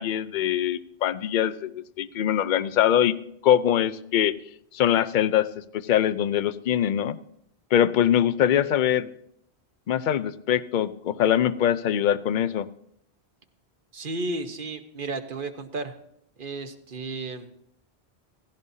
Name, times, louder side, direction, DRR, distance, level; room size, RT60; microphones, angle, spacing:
voice 1, 0.0-3.1 3.4-4.3 4.7-5.5 5.7-7.2 7.7-9.1 9.9-12.7, left 10 dB, 55° left, 15 dB, 0.7 m, -23 dB
voice 2, 13.9-15.9 16.4-17.5, right 2 dB, 55° right, 7 dB, 1.2 m, -33 dB
17.5 x 15.5 x 2.8 m, 0.71 s
omnidirectional pair, 1.1 m